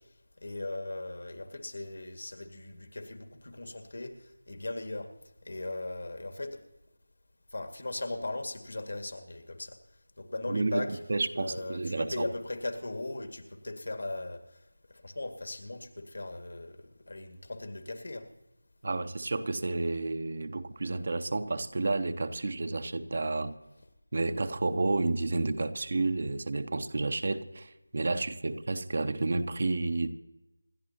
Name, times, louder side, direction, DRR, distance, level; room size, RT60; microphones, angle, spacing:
voice 1, 0.4-5.1 5.4-6.6 7.5-9.8 10.2-11.0 11.4-14.6 14.9-18.3, left 2 dB, 60° left, 2.1 m, -38 dB
voice 2, 10.5-12.3 18.8-23.6 24.1-30.1, right 3 dB, 45° right, 0.8 m, -31 dB
27.0 x 11.5 x 2.9 m
figure-of-eight pair, 165°, 0 cm